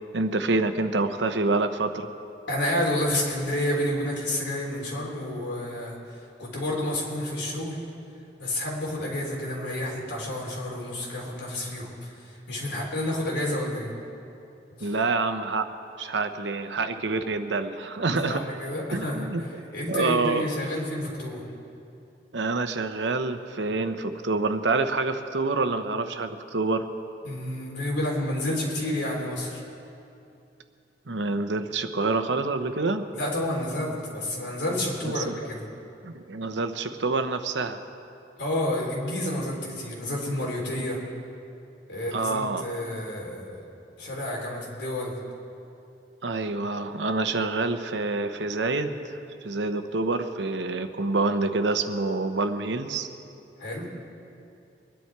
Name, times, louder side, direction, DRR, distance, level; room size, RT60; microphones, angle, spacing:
voice 1, 0.1-2.1 14.8-15.7 16.0-18.4 18.9-19.6 19.9-20.5 22.3-26.9 31.1-33.1 35.2-35.3 36.0-37.8 42.1-42.6 46.2-49.2 49.4-53.1, right 3 dB, 90° right, 8 dB, 0.9 m, -27 dB
voice 2, 2.5-7.8 8.4-13.9 14.8-14.9 18.1-19.5 19.7-21.4 27.2-29.6 33.1-35.6 38.4-41.0 41.9-43.6 44.0-45.2 53.6-53.9, left 1 dB, 85° left, -3 dB, 3.5 m, -30 dB
23.5 x 10.5 x 4.7 m, 2.7 s
head